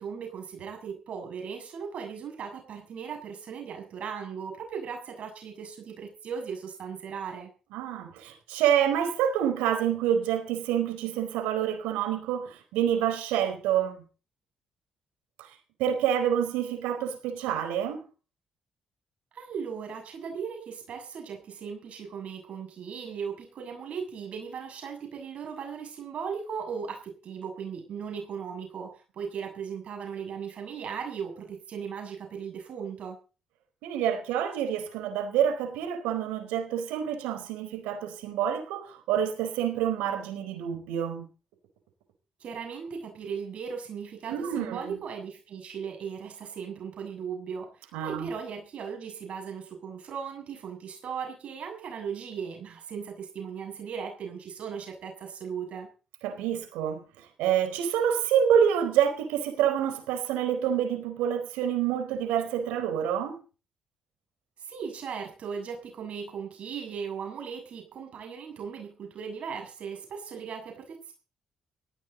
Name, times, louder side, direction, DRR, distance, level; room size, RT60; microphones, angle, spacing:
voice 1, 0.0-7.5 19.3-33.2 42.4-55.9 64.6-71.1, right 6 dB, 65° right, 7.2 m, -37 dB
voice 2, 7.7-14.0 15.4-15.5 15.8-18.0 33.8-41.3 44.3-45.0 47.9-48.3 56.2-57.0 57.4-63.4, right 9 dB, 90° right, 4.4 m, -27 dB
18.5 x 16.0 x 4.1 m
supercardioid pair, 55°, 2 cm